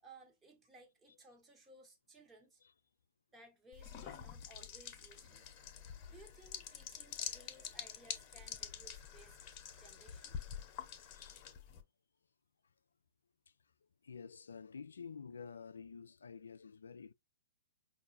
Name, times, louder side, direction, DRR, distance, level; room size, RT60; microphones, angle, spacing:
voice 1, 0.0-2.6 3.3-5.5 6.1-9.4 9.8-10.4, right 2 dB, 15° right, 1.2 m, -61 dB
sound 1, 3.7-11.8, left 8 dB, 35° left, 0.9 m, -47 dB
voice 2, 11.1-11.4 14.0-17.1, left 6 dB, 80° left, 0.3 m, -50 dB
5.3 x 2.6 x 2.6 m
hypercardioid pair, 125°, 0 cm